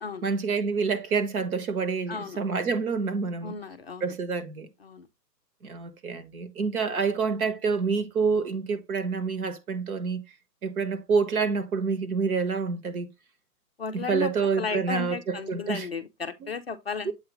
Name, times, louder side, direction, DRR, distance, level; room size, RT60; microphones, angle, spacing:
voice 1, 0.2-3.5 4.0-4.7 5.6-10.2 10.6-13.1 13.9-15.9 16.4-16.5 17.0-17.1, right 5 dB, 60° right, 1.4 m, -27 dB
voice 2, 2.1-2.4 3.4-4.1 4.8-5.1 13.8-14.3 14.6-17.1, left 5 dB, 40° left, 0.5 m, -34 dB
7.9 x 2.8 x 4.8 m
hypercardioid pair, 160°, 50 cm